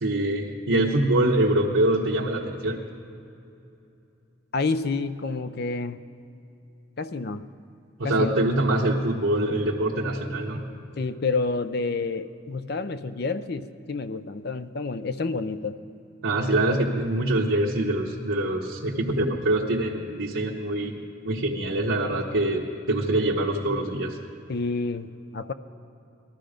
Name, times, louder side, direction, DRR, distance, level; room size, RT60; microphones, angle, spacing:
voice 1, 0.0-2.8 8.0-10.7 16.2-20.9 21.2-24.2, right 1 dB, 80° right, -5 dB, 1.2 m, -24 dB
voice 2, 4.5-6.0 7.0-7.5 8.0-8.3 11.0-15.8 24.5-25.5, left 3 dB, 50° left, 11 dB, 0.5 m, -29 dB
19.0 x 13.0 x 5.1 m, 2.7 s
head